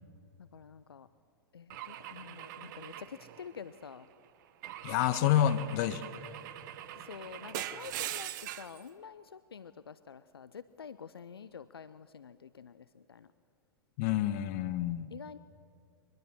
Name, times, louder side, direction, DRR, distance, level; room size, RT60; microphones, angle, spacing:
voice 1, 0.4-1.1 1.5-4.1 6.9-13.3 15.1-15.4, left 7 dB, 75° left, 14 dB, 0.6 m, -48 dB
Car / Engine / Glass, 1.7-3.9 4.6-8.8, right 12 dB, 50° right, 1.1 m, -42 dB
voice 2, 4.8-6.0 14.0-15.1, left 11 dB, 45° left, 12 dB, 1.4 m, -28 dB
23.5 x 21.0 x 7.5 m, 2.6 s
figure-of-eight pair, 100°, 13 cm